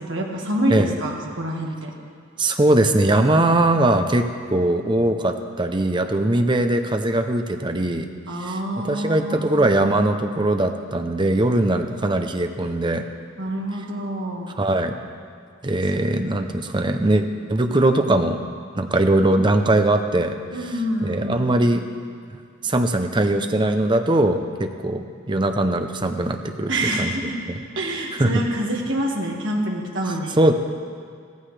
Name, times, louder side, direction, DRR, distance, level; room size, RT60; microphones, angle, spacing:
voice 1, 0.0-1.9 8.3-9.8 13.4-14.5 20.5-21.5 26.7-27.4 27.8-30.4, right 1 dB, 60° right, 0 dB, 1.7 m, -26 dB
voice 2, 2.4-8.1 8.4-13.0 14.6-15.0 15.6-18.4 18.8-21.8 22.6-26.7 27.0-27.1 27.5-27.6 28.2-28.3 30.4-30.5, right 1 dB, 20° right, 6 dB, 0.6 m, -21 dB
16.0 x 14.5 x 3.3 m, 2.2 s
head